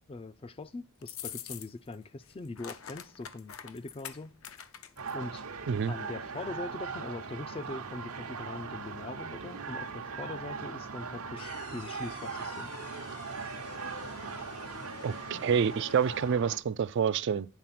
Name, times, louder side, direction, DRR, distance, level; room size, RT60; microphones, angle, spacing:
voice 1, 0.1-4.4 5.1-5.4 5.9-12.7, left 3 dB, 25° left, 0.3 m, -42 dB
sound 1, 1.0-1.9 2.2-5.1, left 9 dB, 65° left, 0.6 m, -44 dB
sound 2, 5.0-16.6, right 5 dB, 80° right, 0.9 m, -40 dB
sound 3, 11.4-16.4, left 3 dB, 85° left, 2.0 m, -48 dB
voice 2, 15.0-17.5, right 7 dB, 55° right, 0.3 m, -28 dB
9.0 x 3.9 x 5.9 m
head